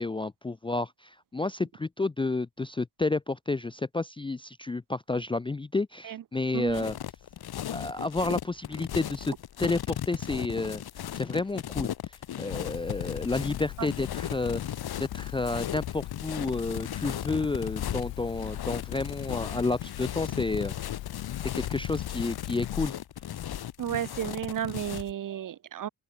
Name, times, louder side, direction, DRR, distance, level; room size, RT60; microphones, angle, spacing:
voice 1, 0.0-7.0 7.7-10.8 11.1-11.9 12.4-14.6 15.0-20.7 21.5-22.9, left 3 dB, 10° left, 0.6 m, -30 dB
voice 2, 6.5-6.8 13.8-13.9 23.8-25.9, right 10 dB, 45° right, 1.3 m, -33 dB
sound 1, 6.7-25.1, left 11 dB, 55° left, 3.6 m, -36 dB
sound 2, 12.5-22.9, left 16 dB, 75° left, 1.2 m, -40 dB
open air
cardioid pair, 150°, 45 cm